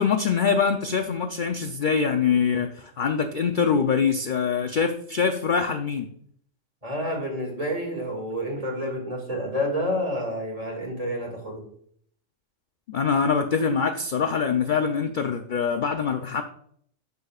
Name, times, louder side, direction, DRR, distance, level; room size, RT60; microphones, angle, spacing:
voice 1, 0.0-6.1 12.9-16.4, left 6 dB, 55° left, 6 dB, 0.6 m, -24 dB
voice 2, 6.8-11.6, equal, 30° right, 1 dB, 2.1 m, -29 dB
13.0 x 5.5 x 2.4 m, 0.64 s
omnidirectional pair, 1.3 m